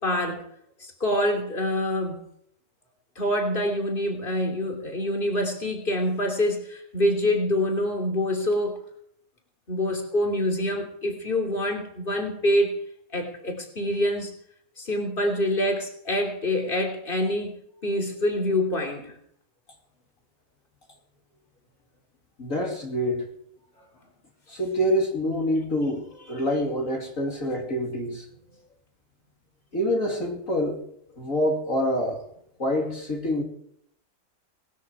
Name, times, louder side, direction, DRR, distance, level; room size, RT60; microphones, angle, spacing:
voice 1, 0.0-0.4 0.8-2.2 3.1-8.8 9.7-12.7 13.1-14.3 14.8-17.5 17.8-19.1, left 1 dB, 35° left, 3 dB, 3.4 m, -26 dB
voice 2, 22.4-23.3 24.5-28.2 29.7-30.8 31.2-32.2 32.6-33.4, equal, 60° left, 0 dB, 3.2 m, -26 dB
20.0 x 13.0 x 4.7 m, 0.70 s
omnidirectional pair, 1.6 m